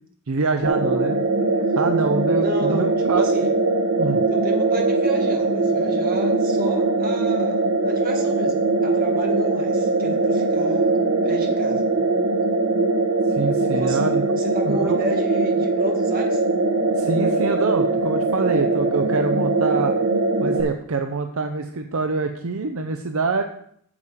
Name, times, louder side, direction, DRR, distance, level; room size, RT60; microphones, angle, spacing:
voice 1, 0.3-1.2 1.7-3.3 4.0-4.2 13.3-14.3 14.6-15.0 17.0-19.9 20.4-23.4, right 4 dB, 65° right, 6 dB, 0.6 m, -25 dB
sound 1, 0.6-20.6, right 3 dB, 85° right, 1.3 m, -21 dB
voice 2, 2.4-3.5 4.3-10.9 11.2-11.8 13.6-16.4, right 2 dB, 40° right, 1 dB, 1.8 m, -32 dB
8.5 x 7.1 x 5.0 m, 0.67 s
head